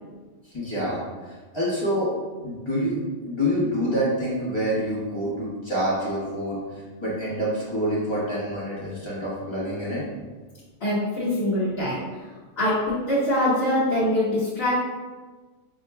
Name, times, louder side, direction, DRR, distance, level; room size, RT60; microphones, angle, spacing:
voice 1, 0.4-2.1 2.4-3.0 3.2-6.6 7.0-10.0, equal, 20° left, -9 dB, 1.3 m, -27 dB
voice 2, 10.8-12.0 12.6-14.8, left 1 dB, 50° left, -11 dB, 1.3 m, -23 dB
6.1 x 2.9 x 2.3 m, 1.3 s
omnidirectional pair, 1.4 m